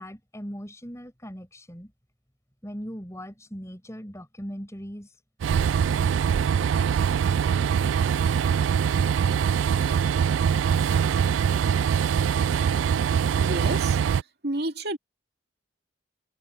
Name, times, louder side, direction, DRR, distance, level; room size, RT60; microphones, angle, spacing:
voice 1, 0.0-1.9 2.6-5.2, equal, 15° left, 6.6 m, -39 dB
Train, 5.4-14.2, right 7 dB, 75° right, 0.3 m, -23 dB
voice 2, 13.4-14.0 14.4-15.0, right 2 dB, 60° right, 2.5 m, -30 dB
head